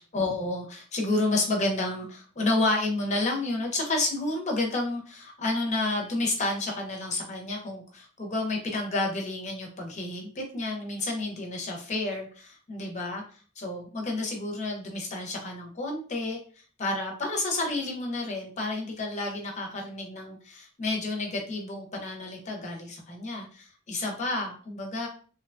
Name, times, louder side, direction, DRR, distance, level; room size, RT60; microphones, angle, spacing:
voice 1, 0.1-13.2 13.6-16.4 16.8-25.1, left 2 dB, 40° left, 0 dB, 0.7 m, -30 dB
2.8 x 2.2 x 2.4 m, 0.41 s
head